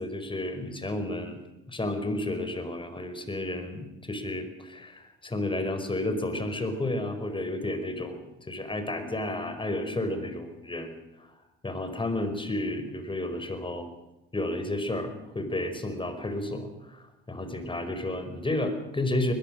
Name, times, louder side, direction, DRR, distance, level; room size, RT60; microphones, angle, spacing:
voice 1, 0.0-1.4 1.7-11.3 11.6-13.9 14.3-19.3, left 1 dB, 15° left, 8 dB, 5.2 m, -32 dB
21.5 x 21.0 x 6.5 m, 0.95 s
hypercardioid pair, 65°, 30 cm